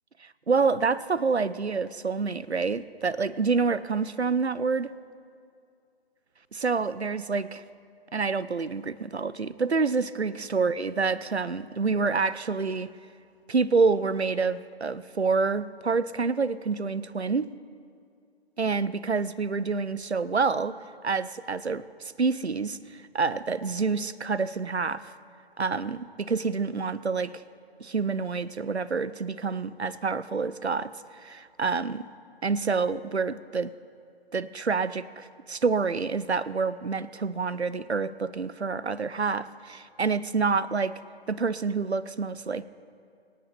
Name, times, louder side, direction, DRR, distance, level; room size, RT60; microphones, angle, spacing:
voice 1, 0.5-4.9 6.5-7.6 8.1-12.9 13.5-17.5 18.6-25.1 25.6-27.3 27.8-30.9 31.2-32.1 32.4-33.7 34.3-41.0 41.3-42.6, right 4 dB, 90° right, 17 dB, 0.6 m, -27 dB
23.0 x 9.0 x 3.3 m, 2.4 s
figure-of-eight pair, 145°, 32 cm